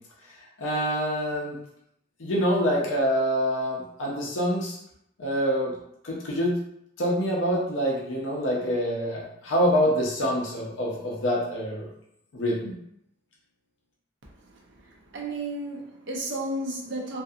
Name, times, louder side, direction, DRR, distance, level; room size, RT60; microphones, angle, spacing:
voice 1, 0.6-1.6 2.2-4.8 5.2-5.7 6.0-6.6 7.0-11.9 12.3-12.8, equal, 85° left, -3 dB, 0.6 m, -26 dB
voice 2, 14.4-17.2, right 1 dB, 70° right, -2 dB, 0.7 m, -33 dB
2.5 x 2.4 x 2.7 m, 0.74 s
head